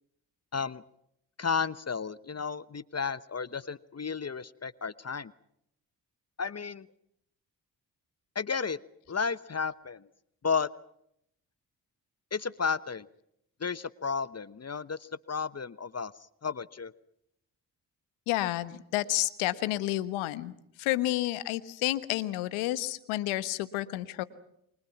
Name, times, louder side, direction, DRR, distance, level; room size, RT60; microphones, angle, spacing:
voice 1, 0.5-0.8 1.4-5.3 6.4-6.9 8.3-8.8 9.1-10.1 10.4-10.7 12.3-13.1 13.6-16.1 16.4-16.9, left 5 dB, 30° left, 17 dB, 1.0 m, -33 dB
voice 2, 18.3-20.5 20.8-24.2, left 16 dB, 85° left, 14 dB, 1.4 m, -30 dB
28.5 x 24.5 x 6.0 m, 0.76 s
hypercardioid pair, 40°, 47 cm